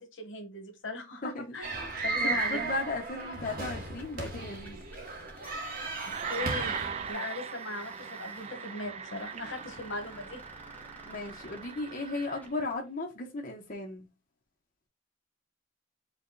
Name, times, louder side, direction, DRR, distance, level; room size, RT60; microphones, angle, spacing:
voice 1, 0.0-2.6 6.3-6.8 7.1-10.4, left 2 dB, 80° left, 1.3 m, -39 dB
voice 2, 1.2-1.9 2.2-4.8 11.1-14.1, left 2 dB, 45° left, 1.1 m, -36 dB
sound 1, 1.6-7.1, right 3 dB, 50° right, 1.2 m, -35 dB
sound 2, 3.1-12.8, left 1 dB, 10° left, 1.0 m, -53 dB
sound 3, 5.4-12.6, right 7 dB, 35° right, 0.3 m, -40 dB
5.0 x 2.4 x 3.9 m
head